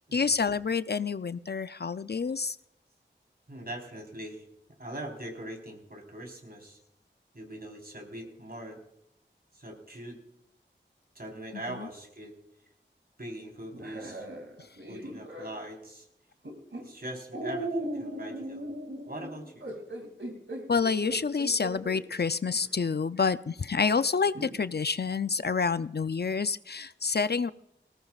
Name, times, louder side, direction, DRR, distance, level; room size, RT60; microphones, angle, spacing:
voice 1, 0.1-2.6 20.7-27.5, left 5 dB, 55° left, 13 dB, 0.5 m, -28 dB
voice 2, 3.5-4.5 4.8-6.8 7.3-8.8 9.5-10.2 11.1-12.4 13.2-14.3 14.9-16.1 16.8-18.7 19.1-19.7, right 1 dB, 50° right, 2 dB, 4.1 m, -42 dB
sound 1, 13.7-15.6 16.4-16.8 17.3-22.0 22.6-22.7 24.3-24.6, right 1 dB, 85° right, 2.6 m, -37 dB
19.5 x 18.5 x 2.4 m, 0.79 s
wide cardioid pair, 45°, 19 cm